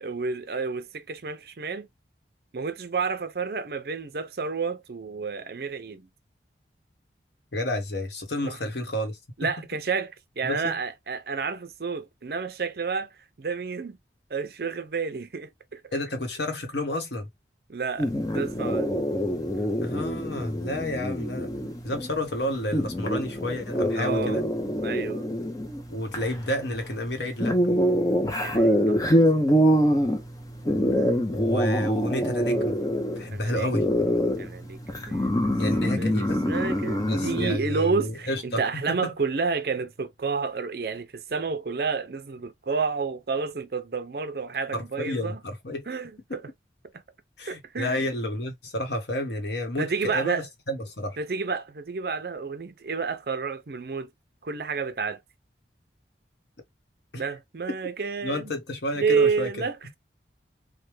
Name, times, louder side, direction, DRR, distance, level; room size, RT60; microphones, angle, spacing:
voice 1, 0.0-1.9 2.5-6.1 8.4-8.6 9.4-14.0 14.3-15.9 17.7-18.9 19.6-19.7 23.9-24.4 24.8-25.3 28.4-29.3 29.7-29.8 33.3-33.7 34.4-35.5 35.8-45.4 45.9-46.4 47.5-48.0 49.8-50.5 51.2-54.1 54.4-55.2 57.2-58.5 59.0-59.9, right 5 dB, 55° right, 0.5 m, -30 dB
voice 2, 7.5-9.5 10.4-10.7 15.9-17.3 19.8-21.5 21.8-24.4 25.9-27.6 31.3-32.7 33.1-33.8 35.6-36.4 37.0-39.1 44.7-45.8 47.4-51.2 57.1-57.2 57.7-57.8 58.2-59.7, left 1 dB, 70° left, 1.1 m, -30 dB
sound 1, 18.0-37.6, equal, 20° left, 0.6 m, -25 dB
3.2 x 2.2 x 3.1 m
head